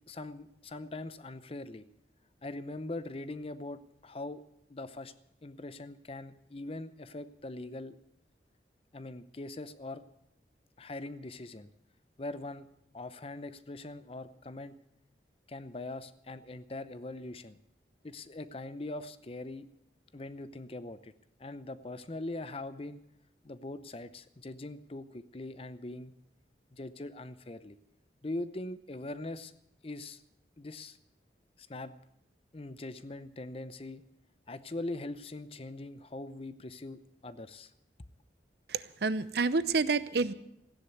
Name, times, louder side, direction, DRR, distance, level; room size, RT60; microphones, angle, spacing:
voice 1, 0.1-1.9 2.4-4.4 4.7-5.1 5.4-8.0 8.9-10.0 10.8-11.7 12.2-12.7 12.9-14.8 15.5-17.6 18.0-19.7 20.1-21.1 21.4-23.0 23.4-26.1 26.7-27.8 28.2-29.5 29.8-30.2 30.6-31.0 31.6-32.0 32.5-34.0 34.5-37.7, left 2 dB, 35° left, 13 dB, 0.7 m, -41 dB
voice 2, 38.7-40.3, right 4 dB, 65° right, 15 dB, 0.7 m, -29 dB
15.5 x 10.0 x 8.1 m, 0.80 s
head